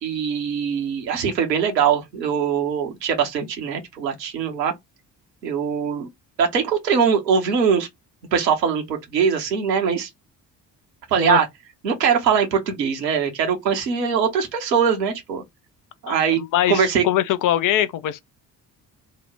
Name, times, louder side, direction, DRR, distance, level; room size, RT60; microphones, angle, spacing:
voice 1, 0.0-4.7 5.4-6.1 6.4-7.9 8.3-10.1 11.1-11.5 11.8-15.4 16.0-16.4 16.7-17.0, right 7 dB, 85° right, 0.8 m, -21 dB
voice 2, 16.1-18.2, left 12 dB, 40° left, 0.5 m, -22 dB
2.8 x 2.1 x 3.3 m
figure-of-eight pair, 40°, 48 cm